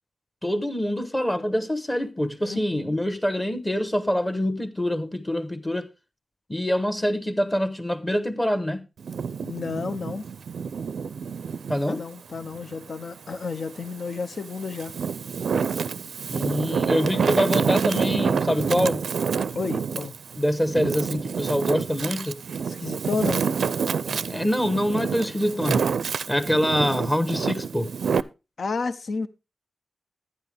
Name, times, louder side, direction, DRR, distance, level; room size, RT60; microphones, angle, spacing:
voice 1, 0.4-5.9 6.5-8.8 11.7-12.0 16.3-19.1 20.4-22.4 24.1-25.8 26.3-27.9, equal, 15° left, 1.2 m, -25 dB
voice 2, 2.5-2.9 9.4-10.3 11.9-14.9 19.5-20.1 22.7-23.4 28.6-29.3, left 4 dB, 60° left, 0.7 m, -31 dB
Wind, 9.0-11.8 12.3-13.6 14.2-28.2, right 6 dB, 85° right, 0.5 m, -28 dB
12.0 x 9.6 x 3.4 m
wide cardioid pair, 95°, 0 cm